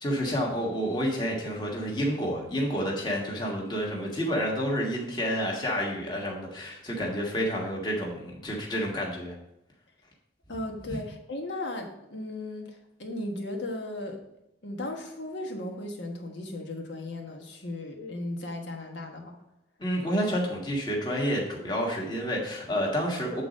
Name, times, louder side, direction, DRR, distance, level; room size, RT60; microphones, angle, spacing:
voice 1, 0.0-9.3 10.9-11.0 19.8-23.4, equal, 25° left, -2 dB, 1.4 m, -29 dB
voice 2, 10.5-14.2 14.6-19.3, left 1 dB, 70° left, 2 dB, 1.3 m, -36 dB
8.2 x 4.0 x 5.1 m, 0.86 s
head